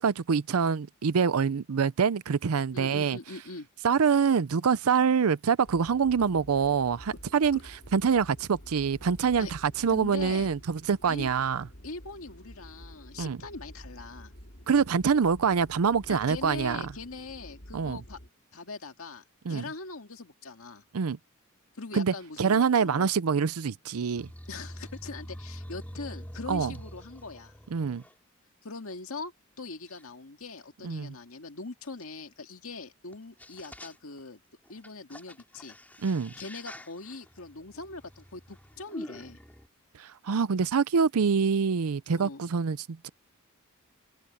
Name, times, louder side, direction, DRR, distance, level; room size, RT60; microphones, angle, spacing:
voice 1, 0.0-3.2 3.8-7.6 7.9-11.7 13.2-13.4 14.7-16.9 17.7-18.0 19.5-19.6 20.9-21.2 21.9-24.3 26.5-26.7 27.7-28.0 30.8-31.1 36.0-36.3 39.9-43.1, right 6 dB, 75° right, 0.5 m, -25 dB
voice 2, 2.7-3.7 7.5-7.6 9.4-9.5 9.9-10.5 11.1-11.3 11.8-14.3 16.1-18.2 18.5-20.8 21.7-23.1 24.5-27.5 28.6-34.4 34.7-35.8 36.4-39.4 42.1-42.4, left 3 dB, 70° left, 2.1 m, -41 dB
sound 1, 5.6-18.3, equal, 50° left, 5.9 m, -49 dB
sound 2, 24.2-28.1 28.9-29.0 29.9-30.0 32.0-32.1 33.1-33.2 33.4-34.2 34.6-39.7, equal, 10° left, 2.9 m, -45 dB
head